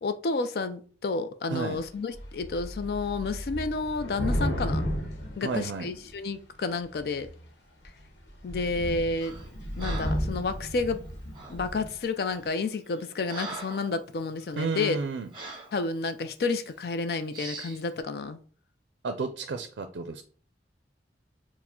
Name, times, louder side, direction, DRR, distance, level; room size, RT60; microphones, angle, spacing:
voice 1, 0.0-4.9 5.4-7.3 8.4-9.3 9.8-11.0 11.5-15.0 15.7-18.4, left 3 dB, 60° left, 0.4 m, -30 dB
voice 2, 1.5-1.8 5.4-5.9 14.6-15.3 19.0-20.2, right 4 dB, 90° right, 0.4 m, -32 dB
Thunder / Rain, 1.7-6.2 7.0-7.4 7.8-8.0 8.2-12.0, equal, 90° left, 1.0 m, -33 dB
Breathing, 9.2-9.5 9.8-10.3 11.3-11.6 12.3-12.5 12.9-13.9 14.4-14.5 15.3-15.7 16.5-16.7 17.3-17.8, right 3 dB, 25° right, 0.9 m, -41 dB
4.7 x 2.1 x 3.6 m
head